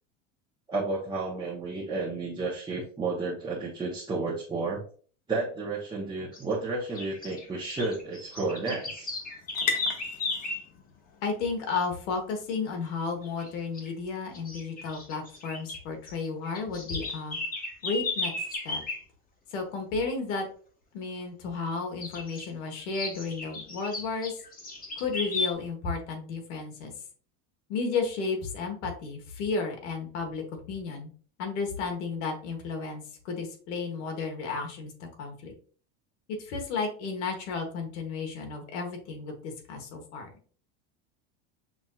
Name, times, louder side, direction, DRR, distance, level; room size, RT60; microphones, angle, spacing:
voice 1, 0.7-4.8 5.3-9.1, right 3 dB, 15° right, -7 dB, 0.9 m, -32 dB
sound 1, 6.1-13.9, left 6 dB, 65° left, 1.0 m, -41 dB
sound 2, 6.3-6.5 7.0-10.7 13.2-13.5 13.8-13.9 14.3-15.8 16.1-19.0 22.0-22.5 22.9-25.5, left 3 dB, 25° left, 1.1 m, -35 dB
voice 2, 11.2-17.4 17.8-18.3 18.6-18.8 19.5-20.5 20.9-24.3 25.0-26.9 27.7-31.1 31.4-34.9 35.2-35.5 36.3-40.3, left 4 dB, 85° left, 3 dB, 1.4 m, -33 dB
6.0 x 2.7 x 2.4 m, 0.42 s
supercardioid pair, 140°, 35 cm